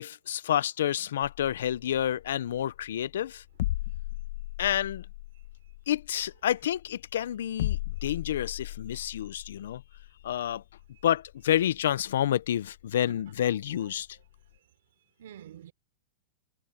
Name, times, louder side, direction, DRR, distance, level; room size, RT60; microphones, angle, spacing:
voice 1, 0.0-3.4 4.6-5.0 5.9-9.8 10.2-10.6 11.0-14.1, left 11 dB, 75° left, 0.6 m, -29 dB
sound 1, 1.2-14.6, left 15 dB, 60° left, 1.1 m, -38 dB
voice 2, 8.9-9.2 10.9-11.0 13.4-14.2 15.2-15.7, right 10 dB, 70° right, 3.5 m, -51 dB
hypercardioid pair, 150°, 0 cm